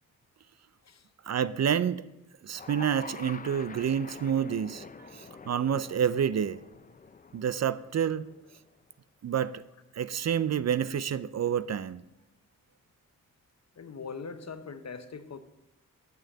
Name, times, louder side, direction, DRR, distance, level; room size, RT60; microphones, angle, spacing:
voice 1, 1.3-2.0 2.4-6.6 7.3-8.3 9.2-9.6 9.9-12.0, right 8 dB, 50° right, 0.5 m, -28 dB
sound 1, 2.5-8.8, left 4 dB, 25° left, 0.5 m, -47 dB
voice 2, 13.8-15.4, left 5 dB, 50° left, 0.9 m, -41 dB
7.1 x 6.3 x 7.2 m
cardioid pair, 50°, 33 cm